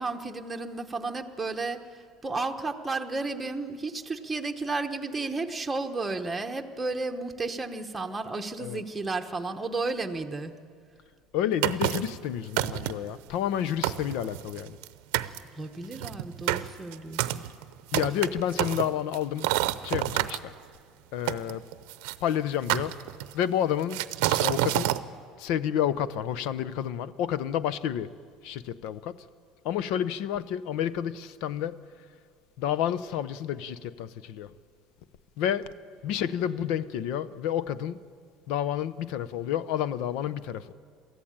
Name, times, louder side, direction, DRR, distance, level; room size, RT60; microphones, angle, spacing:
voice 1, 0.0-1.8 2.2-10.5 15.6-17.5, right 3 dB, 10° right, 1.1 m, -33 dB
voice 2, 11.3-14.8 17.9-19.5 19.8-20.5 21.1-21.6 22.2-23.0 23.3-24.0 24.3-24.9 25.4-28.1 28.4-29.2 29.6-31.8 32.6-34.5 35.4-35.7 36.0-38.0 38.5-40.7, left 10 dB, 65° left, 0.7 m, -30 dB
sound 1, 11.6-12.2 12.6-13.1 13.5-13.6 13.8-14.9 15.1-15.4 15.9-20.4 21.3-22.2 22.7-23.4 23.9-25.0, right 16 dB, 90° right, 0.7 m, -28 dB
23.0 x 14.5 x 8.9 m
cardioid pair, 160°, 0 cm